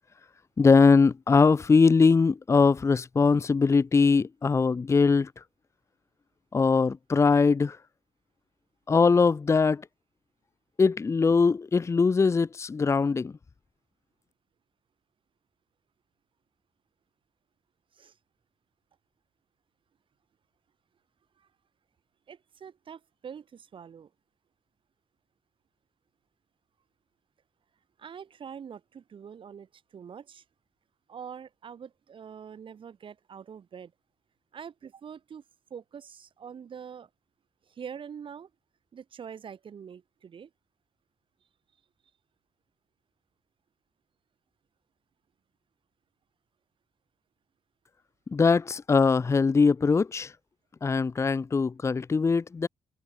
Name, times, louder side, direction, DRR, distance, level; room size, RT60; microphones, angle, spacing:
voice 1, 0.6-5.3 6.5-7.8 8.9-9.8 10.8-13.3 48.3-50.3 50.8-52.7, left 4 dB, 25° left, 0.9 m, -21 dB
voice 2, 22.3-24.1 28.0-30.4 31.1-33.9 34.5-35.4 35.7-37.1 37.7-38.5 38.9-40.5, right 7 dB, 45° right, 7.7 m, -44 dB
cardioid pair, 145°, 12 cm